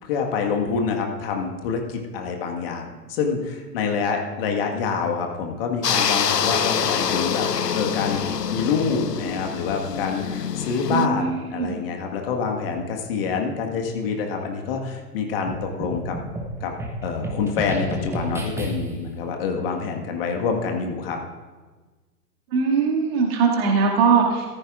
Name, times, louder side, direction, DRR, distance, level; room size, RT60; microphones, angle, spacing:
voice 1, 0.0-7.5 7.7-8.2 8.5-16.1 16.6-16.7 17.0-21.2, left 5 dB, 35° left, 2 dB, 1.6 m, -26 dB
sound 1, 5.8-11.1, left 7 dB, 90° left, 0.6 m, -25 dB
voice 2, 10.9-11.8 22.5-24.5, right 5 dB, 40° right, -1 dB, 2.2 m, -21 dB
sound 2, 15.5-19.1, right 1 dB, 5° right, 1.1 m, -31 dB
14.5 x 14.0 x 2.4 m, 1.3 s
figure-of-eight pair, 110°, 48 cm